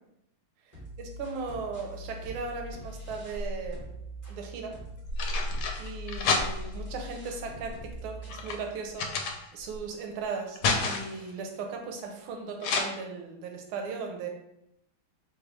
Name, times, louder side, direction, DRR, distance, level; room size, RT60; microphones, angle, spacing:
sound 1, 0.7-3.5 3.7-8.7, equal, 20° left, 0.9 m, -43 dB
voice 1, 0.7-3.9 4.3-4.8 5.8-9.1 9.5-14.3, right 4 dB, 75° right, 3 dB, 1.5 m, -37 dB
sound 2, 3.1-3.9 4.8-6.9 7.6-9.8 10.2-11.3 12.6-12.8, left 3 dB, 80° left, 1.5 m, -30 dB
4.8 x 2.3 x 3.1 m, 0.79 s
omnidirectional pair, 2.4 m